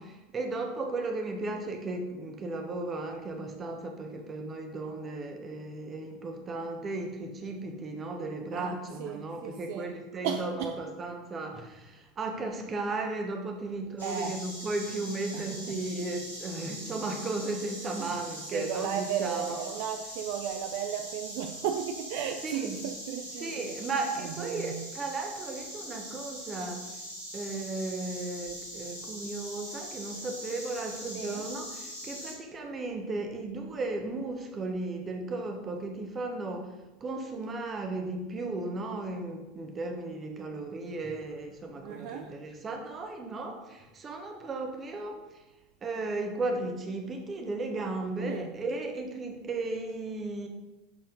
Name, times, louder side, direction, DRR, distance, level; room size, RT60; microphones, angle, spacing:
voice 1, 0.0-19.6 22.4-22.9 23.4-26.9 27.3-45.4 45.8-50.5, right 2 dB, 30° right, 4 dB, 1.3 m, -35 dB
voice 2, 9.0-9.9 10.2-10.8 14.0-14.4 15.3-15.8 18.0-18.1 18.5-23.7 24.2-24.8 31.1-31.4 41.8-42.3 48.2-48.5, right 9 dB, 55° right, 5 dB, 0.5 m, -35 dB
Insect, 14.0-32.3, equal, 90° right, 3.0 m, -42 dB
11.0 x 4.3 x 3.9 m, 1.0 s
figure-of-eight pair, 80°, 0 cm